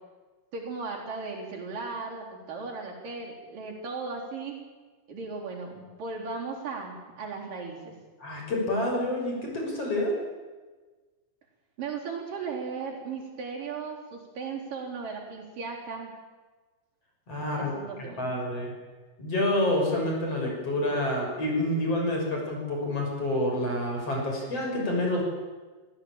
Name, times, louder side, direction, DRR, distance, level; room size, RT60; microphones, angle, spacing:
voice 1, 0.5-4.6 5.1-8.0 11.8-16.1 17.5-18.5, right 4 dB, 60° right, -1 dB, 5.4 m, -36 dB
voice 2, 8.2-10.1 17.3-17.7 18.2-18.7 19.2-25.2, left 1 dB, 40° left, 0 dB, 6.9 m, -28 dB
25.0 x 16.0 x 8.9 m, 1.3 s
omnidirectional pair, 4.4 m